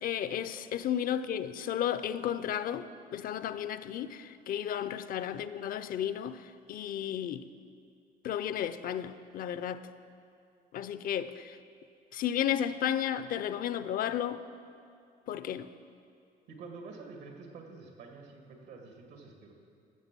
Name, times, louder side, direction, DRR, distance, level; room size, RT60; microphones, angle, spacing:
voice 1, 0.0-7.4 8.2-9.9 10.7-11.6 12.1-14.4 15.3-15.7, left 10 dB, 55° left, 13 dB, 0.5 m, -33 dB
voice 2, 16.5-19.5, right 4 dB, 85° right, 2 dB, 1.9 m, -48 dB
13.5 x 7.3 x 6.1 m, 2.4 s
cardioid pair, 110°, 17 cm